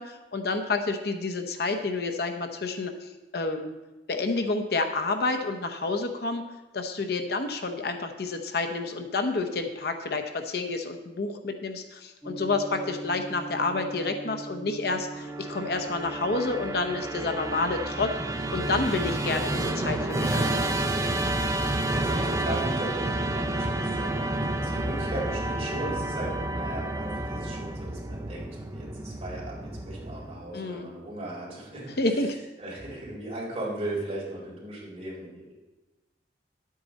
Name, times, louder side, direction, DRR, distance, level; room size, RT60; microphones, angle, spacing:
voice 1, 0.0-3.7 4.1-6.5 6.7-18.1 18.5-21.0 30.5-30.9 32.0-32.3, left 3 dB, 60° left, 6 dB, 0.8 m, -29 dB
sound 1, 12.2-31.8, right 4 dB, ahead, 1.3 m, -44 dB
Musical instrument, 15.2-30.5, right 1 dB, 20° right, 0.6 m, -30 dB
voice 2, 21.6-24.2 24.6-35.5, right 1 dB, 40° right, -5 dB, 3.7 m, -37 dB
10.5 x 8.5 x 4.1 m, 1.1 s
head